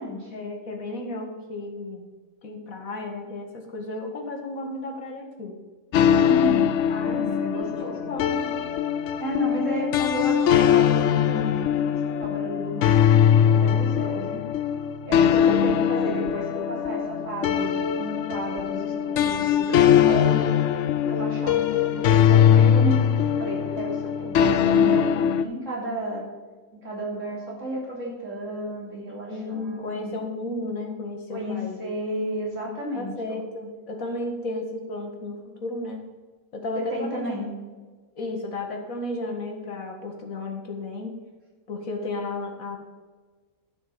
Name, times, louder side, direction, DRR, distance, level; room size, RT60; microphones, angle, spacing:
voice 1, 0.3-2.1 2.4-5.6 6.9-7.3 7.5-8.6 14.0-14.5 15.4-15.6 29.3-31.8 33.0-36.0 36.5-37.4 38.2-41.1 41.7-42.8, left 2 dB, 50° left, 2 dB, 2.2 m, -33 dB
sound 1, 5.9-25.4, left 9 dB, 80° left, 0.6 m, -21 dB
voice 2, 6.1-6.6 7.0-8.0 9.2-11.9 12.2-14.4 15.1-20.4 21.1-26.2 26.7-30.3 31.3-33.4 36.8-37.5, equal, 45° right, -4 dB, 3.5 m, -32 dB
11.0 x 6.0 x 7.0 m, 1.4 s
omnidirectional pair, 1.8 m